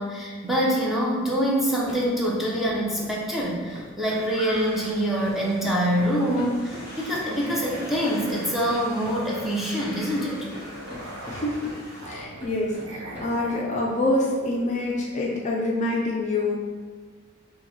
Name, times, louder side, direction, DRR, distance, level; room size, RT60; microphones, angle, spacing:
voice 1, 0.0-10.5, equal, ahead, -5 dB, 0.7 m, -25 dB
sound 1, 1.6-13.5, left 1 dB, 30° right, 1.3 m, -44 dB
sound 2, 4.0-12.1, equal, 15° left, 1.2 m, -43 dB
Musical instrument, 4.9-15.0, right 1 dB, 80° right, 0.6 m, -43 dB
voice 2, 11.3-11.7 12.1-16.5, left 2 dB, 35° left, -3 dB, 0.4 m, -26 dB
5.9 x 2.3 x 3.2 m, 1.5 s
head